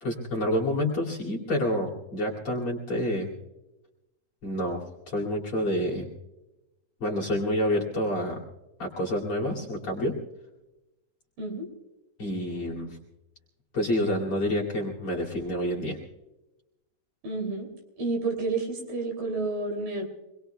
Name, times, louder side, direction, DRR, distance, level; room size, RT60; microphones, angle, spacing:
voice 1, 0.0-3.3 4.4-6.1 7.0-8.4 8.8-10.1 12.2-13.0 13.7-16.0, left 1 dB, 40° left, -1 dB, 3.1 m, -28 dB
voice 2, 17.2-17.7 18.0-20.0, right 3 dB, 65° right, 1 dB, 4.5 m, -30 dB
27.0 x 21.0 x 2.3 m, 1.0 s
omnidirectional pair, 4.4 m